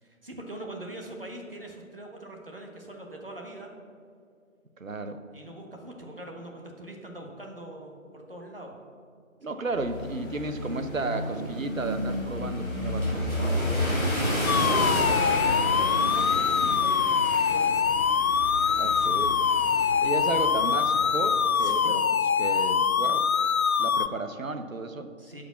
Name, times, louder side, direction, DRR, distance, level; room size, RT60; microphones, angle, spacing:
voice 1, 0.0-3.7 5.3-8.7 9.5-9.6 13.8-18.1 18.6-19.2 21.6-22.0 25.2-25.4, right 1 dB, 40° right, 1 dB, 1.3 m, -43 dB
voice 2, 4.8-5.2 9.4-13.6 18.8-19.4 20.0-23.2 23.8-25.1, right 3 dB, 70° right, 8 dB, 0.9 m, -33 dB
sound 1, 9.7-21.9, equal, 5° right, 2.0 m, -31 dB
sound 2, 14.5-24.1, left 7 dB, 80° left, 0.6 m, -24 dB
11.5 x 5.1 x 5.8 m, 2.2 s
figure-of-eight pair, 175°, 41 cm